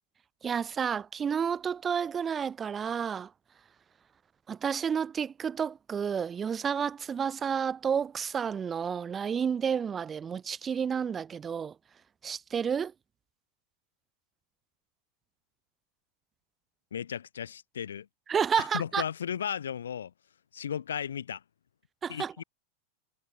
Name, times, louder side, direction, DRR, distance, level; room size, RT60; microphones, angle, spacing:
voice 1, 0.4-3.3 4.5-11.7 12.2-12.9 18.3-19.0 22.0-22.4, right 7 dB, 20° right, 0.6 m, -30 dB
voice 2, 16.9-18.1 18.6-20.1 20.5-21.4 22.1-22.4, left 8 dB, 65° left, 0.7 m, -35 dB
figure-of-eight pair, 90°, 0 cm